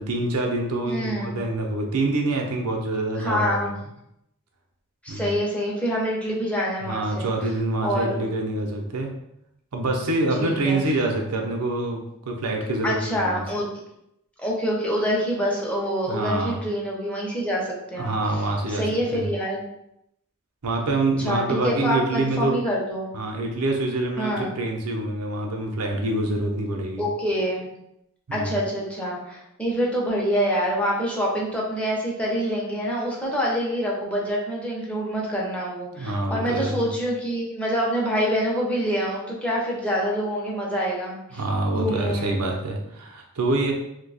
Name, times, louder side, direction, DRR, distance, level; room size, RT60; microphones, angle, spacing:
voice 1, 0.0-3.6 5.1-5.3 6.8-9.1 9.7-13.4 16.1-16.6 18.0-19.3 20.6-22.6 23.1-27.1 28.3-28.6 35.9-36.9 41.3-43.7, right 2 dB, 90° right, 2 dB, 0.7 m, -26 dB
voice 2, 0.9-1.3 3.2-3.7 5.0-7.3 7.8-8.2 10.4-10.8 12.8-13.7 14.4-18.1 18.7-19.6 21.2-23.1 24.2-24.5 27.0-27.7 28.3-41.4 41.7-42.4, equal, 5° left, -4 dB, 0.7 m, -26 dB
2.7 x 2.2 x 4.0 m, 0.81 s
head